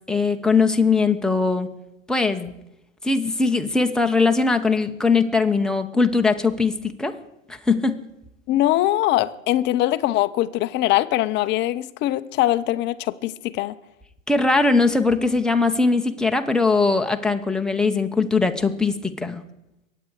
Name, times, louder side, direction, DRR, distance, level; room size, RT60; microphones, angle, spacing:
voice 1, 0.1-1.7 2.1-2.5 3.0-7.1 7.5-8.0 14.3-19.4, left 4 dB, ahead, 4 dB, 1.1 m, -20 dB
voice 2, 8.5-13.7, left 15 dB, 25° left, 12 dB, 0.8 m, -22 dB
23.0 x 9.0 x 4.8 m, 0.88 s
hypercardioid pair, 110°, 40 cm